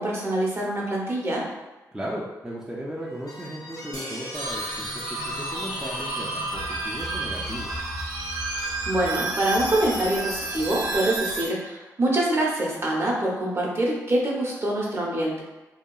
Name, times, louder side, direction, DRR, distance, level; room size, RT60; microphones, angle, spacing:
voice 1, 0.0-1.4 8.6-15.4, right 1 dB, 35° right, -3 dB, 0.8 m, -25 dB
voice 2, 1.9-7.7, right 1 dB, 10° right, -6 dB, 0.5 m, -36 dB
sound 1, 2.9-11.2, left 2 dB, 50° left, 0.5 m, -41 dB
sound 2, 3.9-6.6, equal, 85° left, 1.3 m, -43 dB
sound 3, 4.3-11.5, right 2 dB, 70° right, 0.7 m, -31 dB
2.8 x 2.3 x 2.3 m, 1.1 s
supercardioid pair, 45°, 7 cm